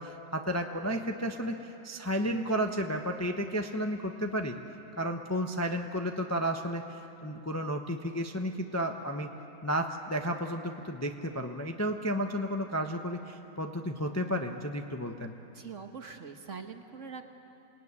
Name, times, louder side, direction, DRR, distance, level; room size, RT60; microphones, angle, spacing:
voice 1, 0.0-4.6 5.0-9.3 9.6-15.3, equal, 15° left, 4 dB, 0.8 m, -32 dB
voice 2, 15.5-17.2, right 5 dB, 50° right, 5 dB, 1.5 m, -43 dB
27.5 x 18.5 x 9.7 m, 2.9 s
omnidirectional pair, 1.8 m